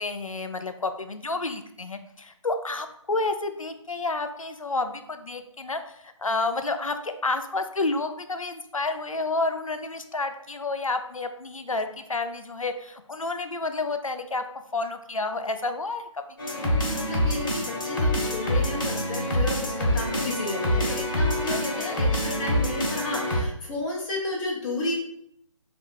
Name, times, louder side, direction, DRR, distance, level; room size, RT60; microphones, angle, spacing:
voice 1, 0.0-14.4 14.7-16.1 21.5-22.0, left 3 dB, 85° left, 8 dB, 0.5 m, -30 dB
sound 1, 16.4-23.4, left 1 dB, 40° left, 0.9 m, -26 dB
voice 2, 16.5-24.9, left 2 dB, 10° left, -4 dB, 0.5 m, -32 dB
3.2 x 2.5 x 4.4 m, 0.74 s
figure-of-eight pair, 145°, 17 cm